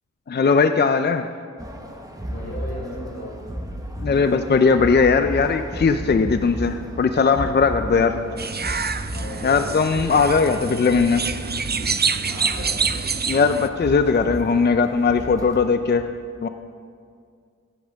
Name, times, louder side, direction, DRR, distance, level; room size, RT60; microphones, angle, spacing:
voice 1, 0.3-1.3 4.0-8.1 9.4-11.2 13.2-16.1 16.4-16.5, left 5 dB, 35° left, 8 dB, 0.4 m, -19 dB
sound 1, 1.6-15.6, equal, 10° right, 1.1 m, -34 dB
voice 2, 2.3-3.4 7.8-8.4 9.1-9.8 12.3-13.0, equal, 55° left, -5 dB, 3.2 m, -36 dB
sound 2, 8.4-13.7, right 5 dB, 35° right, 0.4 m, -26 dB
15.5 x 10.0 x 3.5 m, 2.2 s
wide cardioid pair, 75°, 30 cm